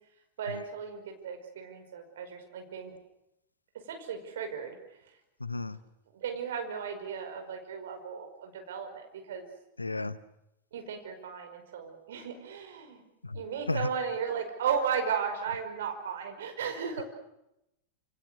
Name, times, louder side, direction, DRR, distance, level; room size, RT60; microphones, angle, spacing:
voice 1, 0.4-2.9 3.7-5.0 6.1-9.5 10.7-13.0 13.3-17.0, right 7 dB, 60° right, 6 dB, 5.4 m, -35 dB
voice 2, 5.4-5.8 9.8-10.2 13.2-13.4 13.7-13.8, left 3 dB, 80° left, 16 dB, 1.0 m, -32 dB
28.0 x 28.0 x 6.6 m, 0.85 s
figure-of-eight pair, 90°, 0 cm